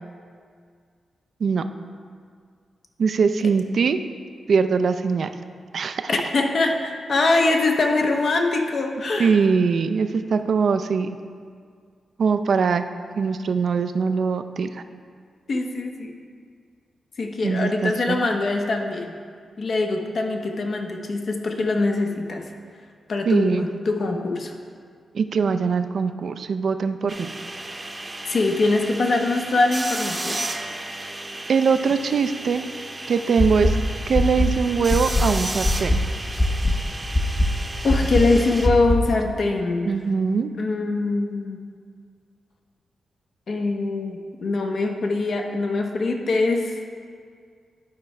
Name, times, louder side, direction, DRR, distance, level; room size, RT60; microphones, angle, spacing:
voice 1, 3.0-4.0 4.5-5.3 5.7-6.1 9.2-11.1 12.2-12.8 13.2-14.8 17.4-18.3 23.3-23.7 25.1-27.3 31.5-32.6 33.1-33.8 34.1-36.0 39.9-40.5, right 5 dB, 70° right, 9 dB, 0.4 m, -22 dB
voice 2, 6.1-9.4 15.5-16.2 17.2-19.1 19.6-22.4 23.1-24.5 28.3-30.4 37.8-39.9 40.6-41.6 43.5-46.7, left 3 dB, 65° left, 3 dB, 0.8 m, -23 dB
sound 1, 27.1-38.7, right 2 dB, 30° right, 0.7 m, -33 dB
sound 2, 33.4-33.7 34.1-34.5 34.9-35.2 35.6-36.0 36.4-36.7 37.1-37.5 37.9-38.2 38.6-39.0, left 1 dB, 35° left, 0.8 m, -19 dB
11.5 x 4.6 x 3.2 m, 2.1 s
supercardioid pair, 50°, 0 cm